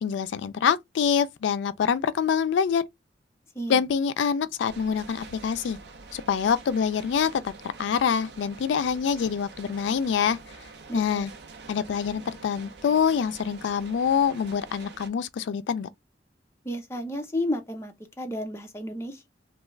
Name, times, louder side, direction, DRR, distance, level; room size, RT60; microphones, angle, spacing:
voice 1, 0.0-2.9 3.7-5.8 6.1-7.5 7.8-10.4 10.9-11.3 11.7-15.9, left 7 dB, 70° left, 0.3 m, -25 dB
sound 1, 4.7-15.1, right 4 dB, 60° right, 0.5 m, -46 dB
voice 2, 10.9-11.3 16.6-19.3, left 1 dB, 15° left, 0.5 m, -32 dB
2.3 x 2.2 x 3.1 m
head